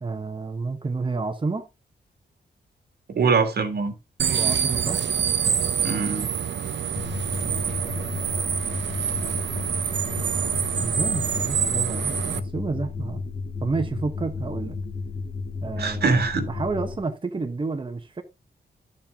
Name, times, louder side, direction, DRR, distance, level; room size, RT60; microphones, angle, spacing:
voice 1, 0.0-1.7 4.3-5.0 7.4-7.8 10.8-13.2 13.6-14.8 15.6-18.2, right 3 dB, 30° right, 1.1 m, -30 dB
voice 2, 3.1-3.9 5.8-6.3 15.8-16.5, right 4 dB, 60° right, 2.2 m, -23 dB
sound 1, 4.2-12.4, right 8 dB, 80° right, 1.0 m, -26 dB
sound 2, 7.0-17.0, left 4 dB, 60° left, 1.9 m, -33 dB
11.0 x 7.4 x 3.6 m
wide cardioid pair, 115°, 18 cm